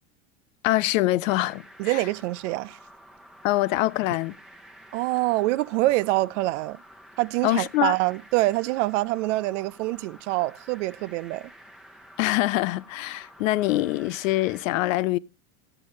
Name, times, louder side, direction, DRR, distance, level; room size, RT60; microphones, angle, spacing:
voice 1, 0.6-2.0 3.4-4.4 7.4-7.9 12.2-15.2, left 17 dB, 75° left, 0.7 m, -24 dB
sound 1, 1.3-14.6, equal, ahead, 1.0 m, -50 dB
voice 2, 1.8-2.8 4.9-6.8 7.2-11.5, right 19 dB, 65° right, 0.5 m, -25 dB
12.0 x 7.9 x 3.0 m
supercardioid pair, 145°, 39 cm